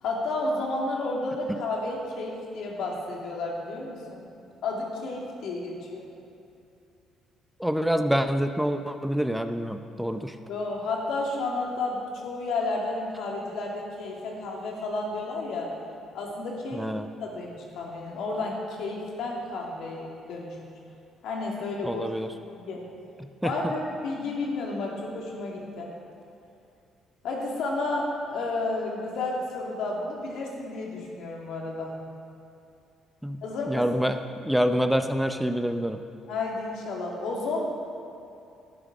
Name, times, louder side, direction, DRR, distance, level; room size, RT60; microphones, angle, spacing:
voice 1, 0.0-4.2 4.6-6.1 10.5-15.7 16.1-16.8 17.2-20.6 21.2-22.8 23.4-25.9 27.2-32.0 33.4-33.8 36.3-37.7, left 2 dB, 75° left, -1 dB, 2.5 m, -31 dB
voice 2, 7.6-10.3 16.7-17.1 21.8-22.3 23.4-23.5 33.2-33.4 33.7-36.0, equal, 5° right, 7 dB, 0.6 m, -26 dB
11.0 x 9.7 x 6.2 m, 2.6 s
cardioid pair, 85°, 0 cm